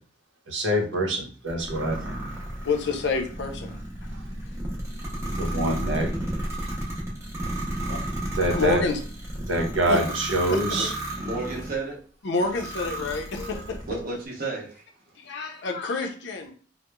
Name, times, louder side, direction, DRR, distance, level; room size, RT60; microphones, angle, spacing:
voice 1, 0.5-2.2 5.4-6.1 8.4-8.8 9.5-10.9, right 1 dB, 90° right, 2 dB, 0.7 m, -25 dB
sound 1, 1.5-11.8 12.3-14.0, right 1 dB, 15° right, 0.7 m, -33 dB
voice 2, 2.6-3.8 4.0-4.1 7.8-8.0 8.3-9.0 9.9-10.0 10.5-10.6 12.2-13.8 15.2-16.5, left 4 dB, 70° left, 4 dB, 0.5 m, -28 dB
voice 3, 11.2-12.0 13.0-13.1 13.9-14.8, right 3 dB, 55° right, -1 dB, 0.8 m, -32 dB
2.9 x 2.0 x 2.2 m, 0.43 s
head